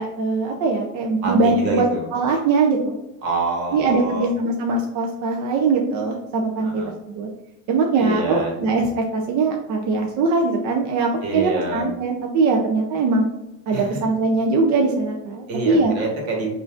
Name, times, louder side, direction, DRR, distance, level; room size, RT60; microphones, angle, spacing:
voice 1, 0.0-2.9 3.7-6.8 7.1-7.3 7.7-13.3 13.7-15.9, right 3 dB, 50° right, 1 dB, 0.5 m, -21 dB
voice 2, 1.2-2.1 3.2-4.3 6.6-6.9 8.0-8.5 11.2-11.8 13.7-14.1 15.5-16.5, right 3 dB, 70° right, -1 dB, 1.5 m, -26 dB
5.5 x 2.6 x 2.4 m, 0.96 s
cardioid pair, 135°, 37 cm